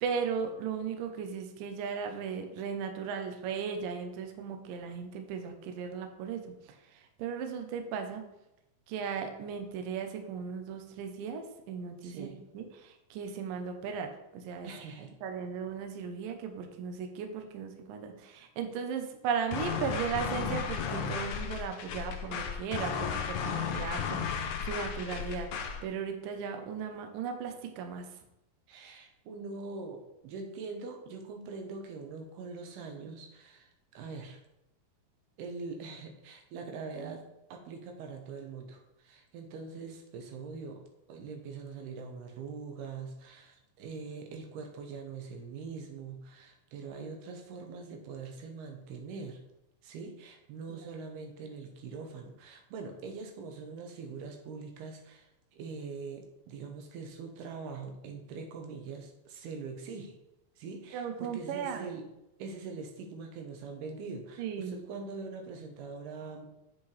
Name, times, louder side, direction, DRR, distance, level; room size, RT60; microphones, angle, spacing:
voice 1, 0.0-8.2 8.9-12.3 12.5-14.7 15.2-28.1 50.7-50.8 60.9-61.9 64.4-64.8, right 6 dB, 75° right, 5 dB, 2.3 m, -36 dB
voice 2, 12.0-12.4 14.6-15.1 28.7-34.4 35.4-40.8 41.1-49.4 49.8-60.2 60.6-62.1 62.4-66.5, right 4 dB, 90° right, 3 dB, 3.1 m, -43 dB
sound 1, 19.5-25.8, left 6 dB, 80° left, 1.7 m, -34 dB
8.1 x 7.4 x 3.3 m, 0.87 s
omnidirectional pair, 4.4 m